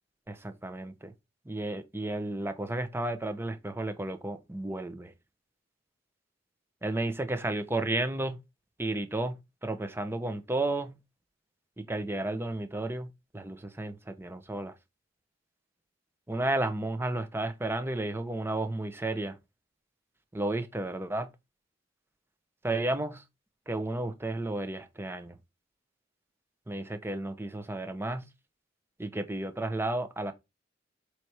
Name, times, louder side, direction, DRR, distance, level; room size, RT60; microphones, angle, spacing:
voice 1, 0.3-1.1 1.5-5.1 6.8-8.4 8.8-11.0 11.8-13.1 13.3-14.7 16.3-19.4 20.3-21.3 22.6-23.2 23.7-25.3 26.7-28.3 29.0-30.3, right 2 dB, 15° right, 0.8 m, -32 dB
7.6 x 3.2 x 4.8 m
head